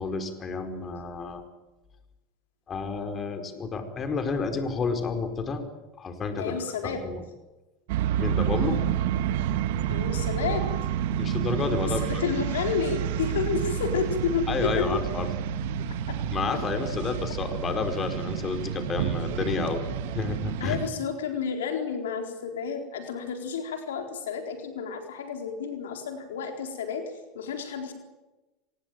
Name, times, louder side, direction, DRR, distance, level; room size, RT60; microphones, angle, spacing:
voice 1, 0.0-1.4 2.7-5.6 6.0-6.5 6.8-7.2 8.2-8.8 11.2-12.2 14.5-15.3 16.3-19.8 20.1-20.8, left 4 dB, 30° left, 8 dB, 4.7 m, -30 dB
voice 2, 6.4-7.0 9.9-10.6 12.0-14.8 16.1-16.2 20.6-27.9, left 6 dB, 90° left, 5 dB, 4.1 m, -31 dB
sound 1, 7.9-20.9, right 10 dB, 75° right, 1.8 m, -29 dB
25.0 x 20.5 x 9.1 m, 1.1 s
hypercardioid pair, 95°, 0 cm